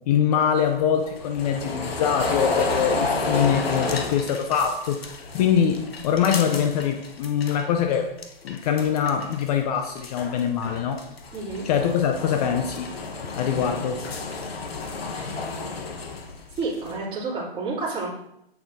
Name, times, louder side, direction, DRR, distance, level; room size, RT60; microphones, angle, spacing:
voice 1, 0.1-5.0 5.3-8.1 8.4-11.0 11.6-12.9 13.4-14.0, left 8 dB, 40° left, 5 dB, 0.7 m, -23 dB
sound 1, 0.6-7.6 7.9-9.5 9.8-17.0, left 3 dB, 80° left, 1.3 m, -31 dB
voice 2, 11.3-11.7 15.1-15.4 16.6-18.1, right 3 dB, 20° right, -7 dB, 3.1 m, -30 dB
8.2 x 6.9 x 2.8 m, 0.82 s
hypercardioid pair, 125°, 30 cm